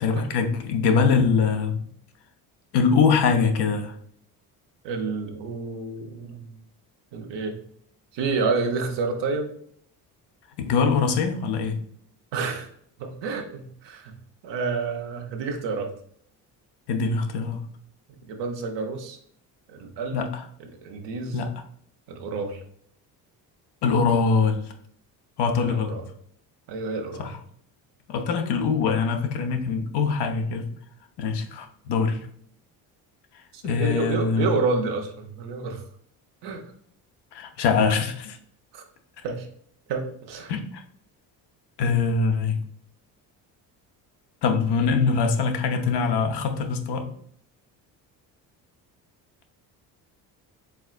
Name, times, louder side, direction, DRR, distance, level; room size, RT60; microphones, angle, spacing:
voice 1, 0.0-1.9 2.7-3.9 10.7-11.8 16.9-17.6 20.1-20.4 21.3-21.5 23.8-24.6 25.4-25.9 27.2-27.4 28.1-30.7 31.2-32.3 33.6-34.5 37.3-38.4 40.5-40.8 41.8-42.6 44.4-47.1, left 5 dB, 65° left, 6 dB, 0.8 m, -23 dB
voice 2, 4.8-6.6 7.1-7.6 8.1-9.5 12.3-12.7 13.0-14.1 14.4-15.9 18.1-19.2 19.7-20.2 20.6-21.4 22.1-22.6 25.6-26.0 26.7-27.3 33.5-35.8 36.4-36.6 38.7-38.8 39.2-39.5 39.9-40.5, right 4 dB, 75° right, 2 dB, 1.0 m, -29 dB
4.7 x 3.6 x 2.5 m, 0.64 s
supercardioid pair, 70°, 43 cm